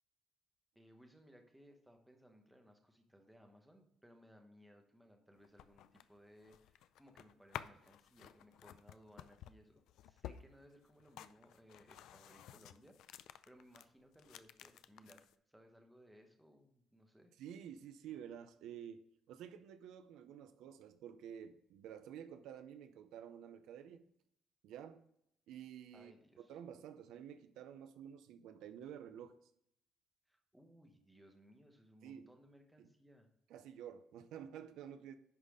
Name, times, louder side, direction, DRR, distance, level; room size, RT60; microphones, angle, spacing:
voice 1, 0.7-17.3 25.9-26.6 30.3-33.3, equal, 5° right, 1.0 m, -63 dB
sound 1, 5.3-13.9 14.1-15.3, left 11 dB, 65° left, 0.4 m, -53 dB
voice 2, 17.4-24.1 24.6-25.1 25.5-26.1 26.4-29.5 32.0-32.3 32.8-32.9 33.5-35.2, right 9 dB, 75° right, 0.6 m, -51 dB
10.5 x 4.1 x 4.9 m
cardioid pair, 170°, 0 cm